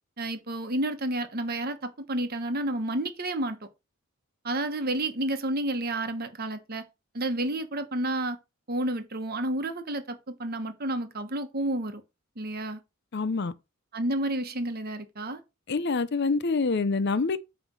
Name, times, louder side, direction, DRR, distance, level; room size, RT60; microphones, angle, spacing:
voice 1, 0.2-3.6 4.4-6.8 7.1-8.4 8.7-12.0 12.4-12.8 13.9-15.4, right 1 dB, 45° right, 1.1 m, -30 dB
voice 2, 13.1-13.5 15.7-17.5, left 4 dB, 50° left, 0.6 m, -26 dB
9.4 x 3.3 x 6.1 m
head